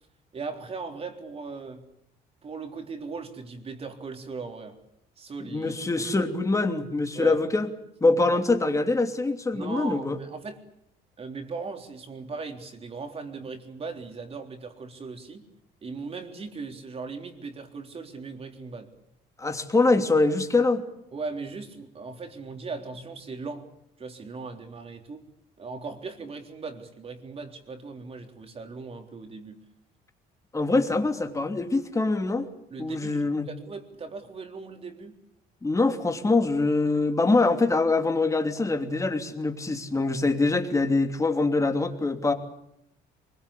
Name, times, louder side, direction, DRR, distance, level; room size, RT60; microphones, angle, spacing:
voice 1, 0.3-1.8 2.4-4.8 5.2-6.3 7.1-7.4 8.3-8.4 9.5-10.6 11.2-15.4 15.8-18.9 21.1-23.7 24.0-25.2 25.6-29.6 32.7-33.2 33.5-35.1, right 4 dB, 35° right, 5 dB, 3.7 m, -38 dB
voice 2, 5.4-7.7 8.0-10.2 19.4-20.8 30.5-32.5 32.8-33.5 35.6-42.3, left 3 dB, 20° left, 6 dB, 2.9 m, -24 dB
23.5 x 22.0 x 8.6 m, 0.80 s
cardioid pair, 110°, 17 cm